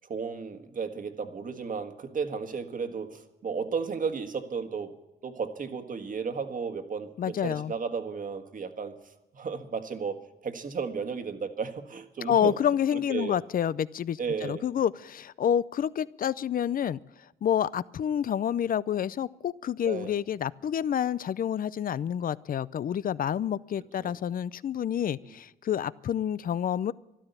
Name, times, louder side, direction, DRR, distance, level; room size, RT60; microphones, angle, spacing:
voice 1, 0.1-4.9 5.2-8.9 9.3-12.5 12.9-13.4 14.2-14.6 19.8-20.1 24.0-24.1 25.2-25.3, right 5 dB, 45° right, 7 dB, 1.7 m, -34 dB
voice 2, 7.2-7.7 12.3-17.0 17.4-26.9, left 9 dB, 45° left, 20 dB, 0.5 m, -28 dB
13.5 x 12.5 x 8.2 m, 0.97 s
cardioid pair, 90°, 20 cm